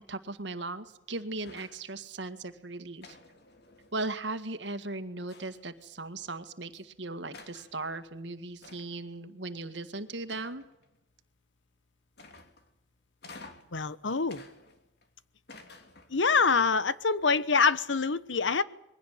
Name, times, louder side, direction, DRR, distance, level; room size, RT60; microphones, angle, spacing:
voice 1, 0.1-3.2 3.9-10.6, right 2 dB, 70° right, 10 dB, 1.9 m, -38 dB
sound 1, 1.4-1.9 3.0-4.1 5.3-5.8 6.7-6.8 7.3-7.8 8.6-9.1 10.3-10.9 12.2-12.7 13.2-13.8 14.3-15.1 15.5-16.2, left 3 dB, 60° left, 2.9 m, -51 dB
voice 2, 13.7-14.4 16.1-18.6, left 5 dB, 85° left, 16 dB, 1.1 m, -25 dB
22.5 x 17.0 x 9.1 m, 0.88 s
head